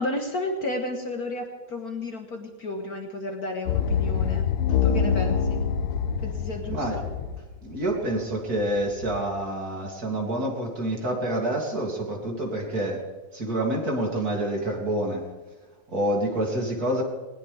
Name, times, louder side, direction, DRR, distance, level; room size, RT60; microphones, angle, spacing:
voice 1, 0.0-4.5 4.8-5.6 6.2-6.9, left 2 dB, 45° left, 3 dB, 1.8 m, -32 dB
sound 1, 3.7-7.9 8.5-9.2, left 7 dB, 90° left, 1.7 m, -25 dB
voice 2, 7.6-13.0 13.3-15.2 15.9-17.0, right 1 dB, 40° right, 0 dB, 3.5 m, -27 dB
20.0 x 19.5 x 3.6 m, 1.3 s
omnidirectional pair, 2.4 m